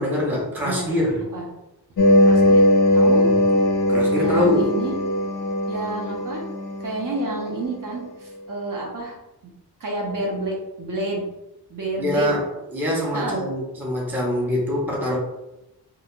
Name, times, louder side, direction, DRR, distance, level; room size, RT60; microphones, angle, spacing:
voice 1, 0.0-1.3 3.1-3.3 3.9-4.7 12.0-15.2, left 1 dB, 5° right, -3 dB, 0.5 m, -24 dB
sound 1, 2.0-7.5, left 1 dB, 55° left, 0.4 m, -19 dB
voice 2, 2.3-2.6 2.9-3.3 4.2-4.9 5.7-6.4 6.8-9.2 9.8-11.3 11.7-12.3 13.1-13.4, right 1 dB, 55° right, -1 dB, 0.6 m, -29 dB
2.4 x 2.1 x 2.9 m, 0.93 s
wide cardioid pair, 145°, 40 cm